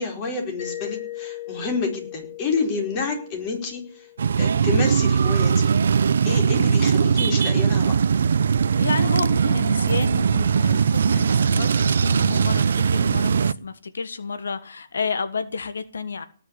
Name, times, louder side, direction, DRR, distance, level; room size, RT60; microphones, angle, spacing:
voice 1, 0.0-4.1 4.4-5.7 6.2-8.0, left 4 dB, 25° left, 5.0 m, -29 dB
Mallet percussion, 0.6-5.2, left 15 dB, 45° left, 4.6 m, -39 dB
sound 1, 4.2-13.5, right 6 dB, 70° right, 0.7 m, -20 dB
voice 2, 8.7-16.2, left 5 dB, 85° left, 1.5 m, -30 dB
18.5 x 7.1 x 9.8 m
hypercardioid pair, 165°, 0 cm